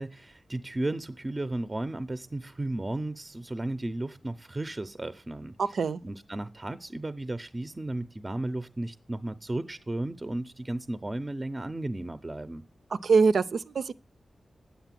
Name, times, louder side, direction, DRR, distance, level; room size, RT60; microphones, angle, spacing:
voice 1, 0.0-5.5 6.0-12.6, right 2 dB, 20° right, 0.6 m, -34 dB
voice 2, 5.6-6.0 13.0-13.9, right 5 dB, 85° right, 0.6 m, -23 dB
9.8 x 8.1 x 7.5 m
wide cardioid pair, 115°, 0 cm